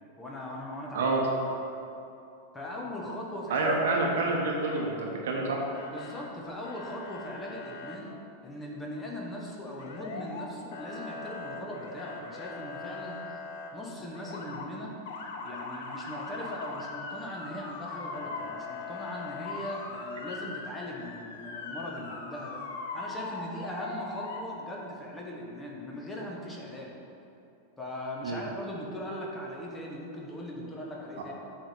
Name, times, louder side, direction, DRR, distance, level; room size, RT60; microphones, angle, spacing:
voice 1, 0.2-1.1 2.5-3.9 5.9-8.1 8.4-13.4 13.7-14.9 15.4-22.6 22.9-26.9 27.8-31.3, left 1 dB, 15° left, -2 dB, 1.3 m, -39 dB
voice 2, 3.5-5.6 28.2-28.4, right 3 dB, 60° right, -1 dB, 1.1 m, -28 dB
Motor vehicle (road) / Siren, 4.5-5.4 5.7-6.3 6.6-8.0 9.8-10.5 10.7-13.7 14.1-14.7 15.1-24.4, left 4 dB, 55° left, 0.8 m, -40 dB
7.9 x 3.5 x 6.5 m, 2.8 s
figure-of-eight pair, 90°, 0 cm